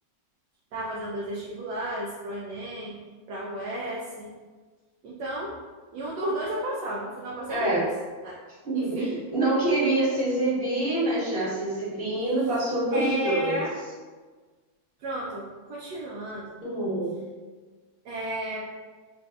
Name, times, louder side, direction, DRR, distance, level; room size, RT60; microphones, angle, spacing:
voice 1, 0.7-3.0 3.3-4.3 5.0-5.6 5.9-7.9 8.2-8.4 8.7-9.1 12.9-13.8 15.0-16.6 18.0-18.7, right 1 dB, 70° right, -5 dB, 1.2 m, -33 dB
voice 2, 7.5-7.8 8.6-13.6 16.6-17.2, right 2 dB, 30° right, -9 dB, 1.6 m, -26 dB
6.4 x 2.6 x 2.3 m, 1.4 s
omnidirectional pair, 2.0 m